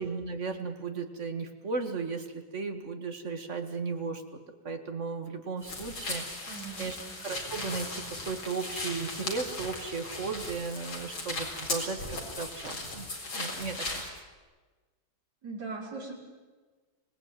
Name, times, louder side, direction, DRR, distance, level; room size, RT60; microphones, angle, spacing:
voice 1, 0.0-4.4 4.6-13.1 13.3-14.1, right 4 dB, 40° right, 6 dB, 2.1 m, -36 dB
sound 1, 5.6-14.1, left 2 dB, 90° left, 4.9 m, -37 dB
voice 2, 6.5-7.2 15.4-16.1, right 4 dB, 55° right, -2 dB, 5.4 m, -40 dB
25.5 x 18.5 x 9.2 m, 1.4 s
omnidirectional pair, 2.1 m